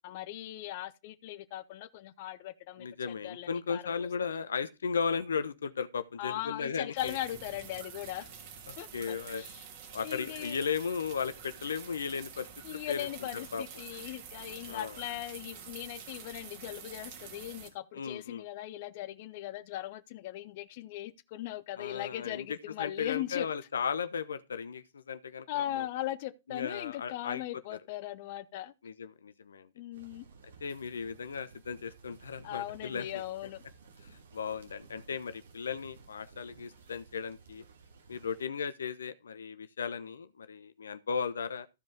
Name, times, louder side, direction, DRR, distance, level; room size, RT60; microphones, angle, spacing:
voice 1, 0.0-3.9 6.2-8.3 8.8-9.6 10.0-10.6 12.6-23.5 25.5-28.7 29.7-30.3 32.4-33.6, left 14 dB, 50° left, 0.8 m, -39 dB
voice 2, 2.8-7.2 8.7-9.4 9.9-13.1 13.5-13.6 14.7-15.0 17.9-18.4 21.8-25.9 26.5-27.4 27.7-27.8 28.8-29.7 30.6-33.1 34.1-37.6 38.1-41.7, left 6 dB, 75° left, 1.0 m, -36 dB
sound 1, 7.0-17.7, right 7 dB, 50° right, 3.2 m, -48 dB
sound 2, 29.9-38.4, right 5 dB, 70° right, 2.6 m, -56 dB
14.5 x 5.2 x 3.6 m
hypercardioid pair, 110°, 0 cm